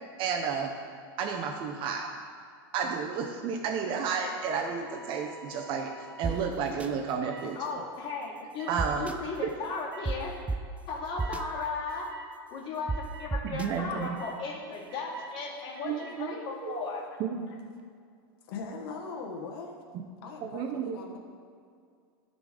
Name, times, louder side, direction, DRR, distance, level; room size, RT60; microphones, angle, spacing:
voice 1, 0.2-0.7 1.2-2.1 2.7-5.9 6.2-7.6 8.7-9.1 9.4-9.5 13.5-14.2 15.8-16.4 16.6-16.8 17.2-17.4 20.4-21.2, right 6 dB, 45° right, 1 dB, 0.7 m, -31 dB
sound 1, 4.7-6.5 7.3-7.5 8.6-8.8 9.9-10.1 11.2-11.4 11.9-12.3 12.9-13.3 13.9-14.4 14.9-15.3 15.7-16.2, right 2 dB, 75° right, 0.9 m, -49 dB
sound 2, 6.2-6.3 6.8-6.9 8.8-9.1 10.1-10.2 10.5-10.6 11.2-11.4 12.9-13.0 13.3-13.7, right 3 dB, 10° right, 0.3 m, -30 dB
voice 2, 7.6-10.4 10.9-12.1 12.5-17.1, left 4 dB, 45° left, -3 dB, 2.1 m, -36 dB
voice 3, 18.5-19.8 20.2-21.2, left 4 dB, 70° left, 1 dB, 1.2 m, -40 dB
11.5 x 4.0 x 4.9 m, 2.2 s
supercardioid pair, 120°, 12 cm